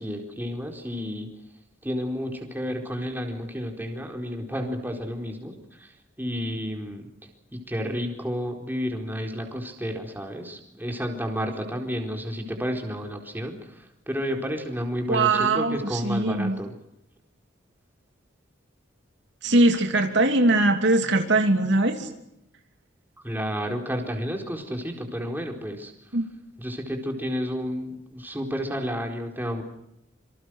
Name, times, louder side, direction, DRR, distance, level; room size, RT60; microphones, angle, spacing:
voice 1, 0.0-1.3 1.8-7.1 7.5-16.7 23.2-26.1 26.6-29.6, equal, 10° right, 2 dB, 4.3 m, -31 dB
voice 2, 15.1-15.8 16.0-16.5 19.4-22.1 26.1-26.3, right 2 dB, 65° right, 5 dB, 2.9 m, -21 dB
27.0 x 26.0 x 6.4 m, 0.80 s
head